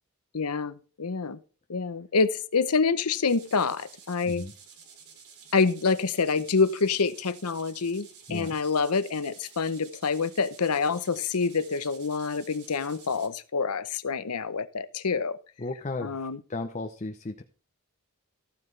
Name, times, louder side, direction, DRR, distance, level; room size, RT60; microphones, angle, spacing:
voice 1, 0.3-1.4 1.7-4.4 5.5-15.4 16.0-16.4, left 4 dB, 90° left, 0.8 m, -27 dB
sound 1, 3.3-13.3, right 6 dB, 85° right, 2.7 m, -51 dB
voice 2, 15.6-17.4, left 2 dB, 35° left, 0.8 m, -35 dB
14.5 x 9.3 x 3.3 m
head